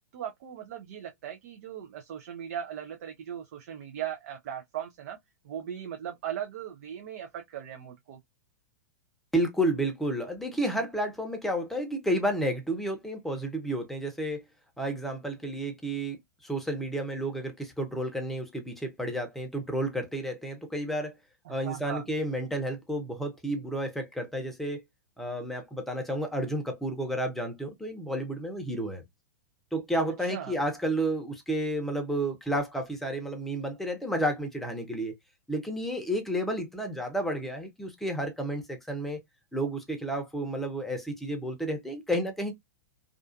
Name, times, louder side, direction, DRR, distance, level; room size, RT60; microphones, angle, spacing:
voice 1, 0.1-5.2 5.4-8.2 21.5-22.0 30.2-30.6, right 10 dB, 60° right, 0.5 m, -38 dB
voice 2, 9.3-14.4 14.8-21.1 21.5-24.8 25.2-29.0 29.7-35.1 35.5-39.2 39.5-42.5, right 1 dB, ahead, 0.7 m, -31 dB
2.4 x 2.4 x 2.4 m
hypercardioid pair, 110°, 9 cm